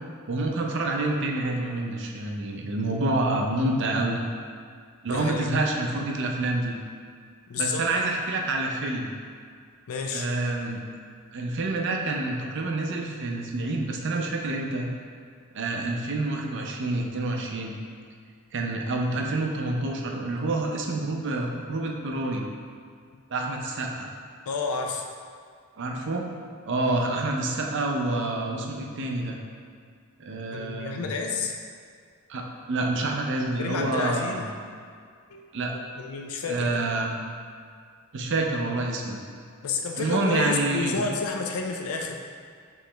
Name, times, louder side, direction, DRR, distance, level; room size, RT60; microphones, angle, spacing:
voice 1, 0.3-4.2 5.0-6.8 7.6-9.1 10.1-10.8 11.3-14.9 15.5-17.8 18.5-22.4 23.3-24.1 25.8-26.3 26.6-29.4 30.2-31.1 32.3-34.5 35.5-35.7 36.5-37.2 38.1-39.2 40.0-41.0, right 2 dB, 55° right, 1 dB, 0.5 m, -27 dB
voice 2, 5.1-5.5 7.5-7.9 9.9-10.3 24.5-25.0 26.7-27.0 30.5-31.6 33.6-34.4 35.3-35.4 35.7-36.8 39.6-42.2, left 4 dB, 80° left, 2 dB, 0.4 m, -30 dB
4.7 x 3.1 x 3.3 m, 2.1 s
head